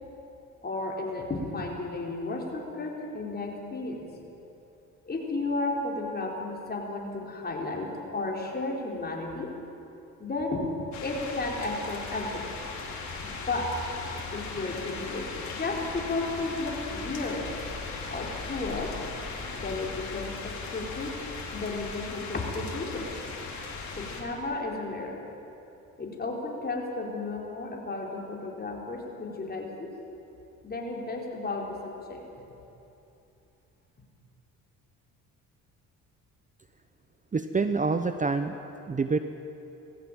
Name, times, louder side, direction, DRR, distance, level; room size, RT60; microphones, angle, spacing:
voice 1, 0.6-4.1 5.1-9.5 10.2-10.7 11.0-12.4 13.2-13.7 14.3-17.5 18.1-18.9 19.5-21.1 21.5-23.1 24.0-25.2 26.0-29.9 30.6-32.2, left 2 dB, 30° left, -1 dB, 4.5 m, -33 dB
sound 1, 10.9-24.2, left 4 dB, 60° left, 4.0 m, -38 dB
voice 2, 37.3-38.5 38.9-39.2, right 4 dB, 25° right, 9 dB, 0.9 m, -26 dB
20.0 x 15.5 x 9.0 m, 2.9 s
cardioid pair, 85°, 32 cm